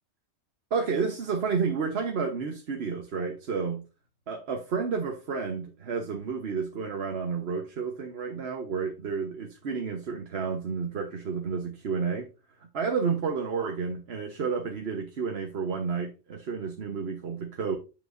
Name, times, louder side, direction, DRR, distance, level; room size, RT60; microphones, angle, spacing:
voice 1, 0.7-3.8 4.3-12.3 12.7-17.8, right 5 dB, 55° right, 1.2 m, -31 dB
7.9 x 7.3 x 2.5 m
omnidirectional pair, 1.3 m